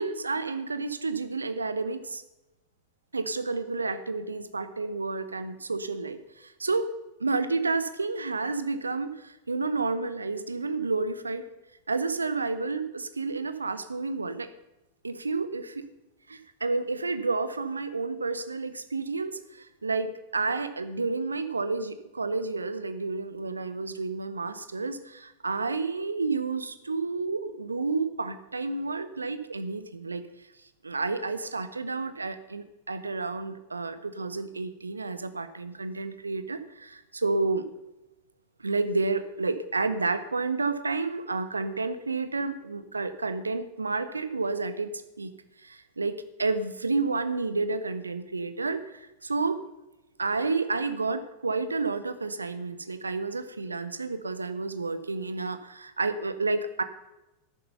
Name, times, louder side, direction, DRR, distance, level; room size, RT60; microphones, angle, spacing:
voice 1, 0.0-2.2 3.1-6.9 7.2-11.4 11.9-14.5 15.0-15.9 16.3-30.2 30.8-37.7 38.6-45.3 45.6-49.6 50.2-56.8, right 3 dB, 80° right, 12 dB, 1.0 m, -30 dB
13.0 x 11.0 x 5.6 m, 0.96 s
figure-of-eight pair, 90°, 0 cm